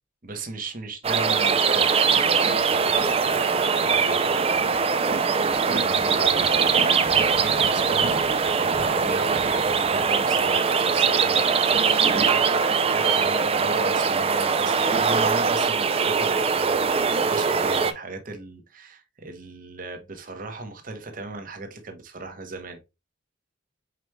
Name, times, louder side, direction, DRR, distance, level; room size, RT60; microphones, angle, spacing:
voice 1, 0.2-22.8, right 3 dB, 45° right, 0.9 m, -37 dB
sound 1, 1.0-17.9, right 5 dB, 30° right, 0.4 m, -22 dB
4.9 x 4.5 x 2.2 m
head